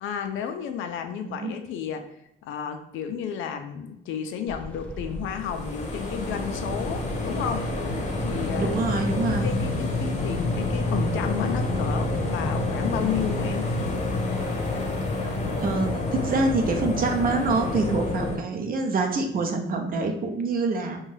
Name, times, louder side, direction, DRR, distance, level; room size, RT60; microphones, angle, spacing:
voice 1, 0.0-2.0 2.4-7.6 7.9-8.8 9.3-13.6, left 8 dB, 85° left, 6 dB, 0.4 m, -32 dB
voice 2, 1.2-1.6 8.6-9.6 15.2-21.0, right 3 dB, 45° right, 4 dB, 0.5 m, -26 dB
sound 1, 4.5-13.5, equal, 5° left, 0.4 m, -39 dB
sound 2, 5.3-18.4, left 2 dB, 35° left, 0.7 m, -28 dB
2.6 x 2.2 x 3.2 m, 0.82 s
cardioid pair, 90°, 20 cm